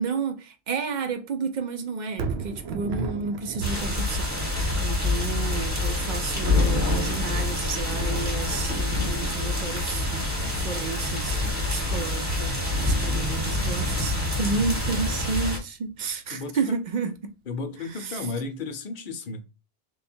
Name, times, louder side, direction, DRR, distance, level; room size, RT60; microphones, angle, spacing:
voice 1, 0.0-10.1 10.5-11.4 11.7-17.3 17.9-18.3, right 4 dB, 55° right, 0.6 m, -31 dB
Thunder, 2.1-16.3 16.7-16.8, right 5 dB, 85° right, 0.9 m, -39 dB
sound 1, 3.6-15.6, left 2 dB, 15° right, 1.1 m, -26 dB
voice 2, 16.3-16.8 17.5-19.4, left 3 dB, 60° left, 0.8 m, -34 dB
3.2 x 2.3 x 4.3 m
omnidirectional pair, 1.1 m